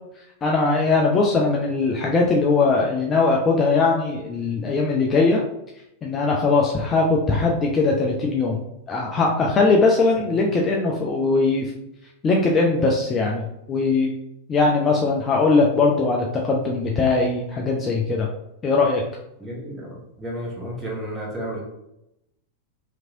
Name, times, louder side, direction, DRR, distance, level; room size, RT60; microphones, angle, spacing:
voice 1, 0.4-5.4 6.0-8.6 8.9-11.7 12.2-14.1 14.5-18.3 18.6-19.0, left 3 dB, 25° left, -1 dB, 0.4 m, -20 dB
voice 2, 19.4-21.6, equal, 10° right, -4 dB, 1.1 m, -32 dB
2.9 x 2.5 x 2.7 m, 0.85 s
figure-of-eight pair, 90°, 0 cm